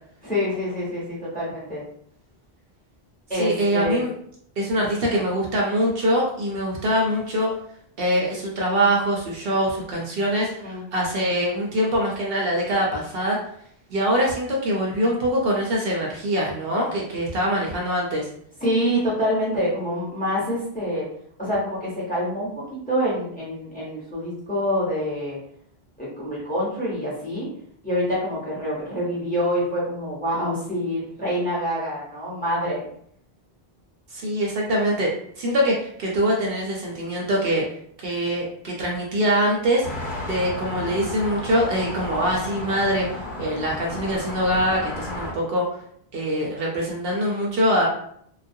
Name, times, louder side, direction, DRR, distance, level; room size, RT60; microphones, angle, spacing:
voice 1, 0.2-1.8 3.3-4.0 10.6-10.8 18.6-21.1 21.4-25.4 26.0-27.5 27.8-32.9, equal, 10° left, -7 dB, 0.8 m, -26 dB
voice 2, 3.3-4.1 4.6-7.5 8.0-13.4 13.9-18.3 34.1-35.1 35.4-37.6 38.0-39.9 40.2-45.7 46.1-47.9, equal, 65° right, -2 dB, 0.8 m, -23 dB
sound 1, 39.8-45.3, left 1 dB, 50° left, 0.9 m, -33 dB
2.3 x 2.0 x 2.6 m, 0.65 s
omnidirectional pair, 1.1 m